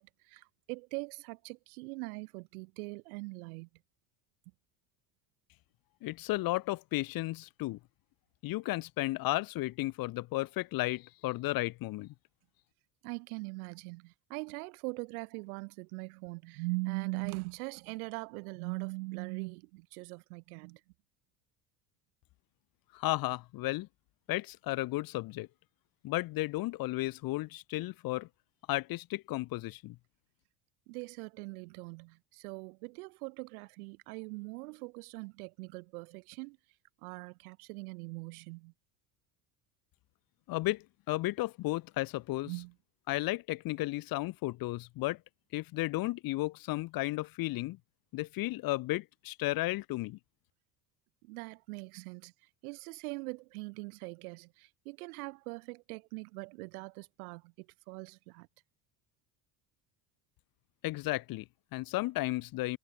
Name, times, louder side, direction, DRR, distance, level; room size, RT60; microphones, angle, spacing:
voice 1, 0.0-3.7 13.0-20.8 30.9-36.6 37.0-38.7 42.4-42.7 51.2-52.3 52.6-58.5, right 27 dB, 80° right, 1.7 m, -41 dB
voice 2, 6.0-7.8 8.4-12.1 22.9-23.9 24.3-25.5 26.0-28.3 28.7-30.0 40.5-42.5 43.1-45.2 45.5-47.8 48.1-50.2 60.8-62.8, left 19 dB, 55° left, 0.7 m, -34 dB
supercardioid pair, 90°, 43 cm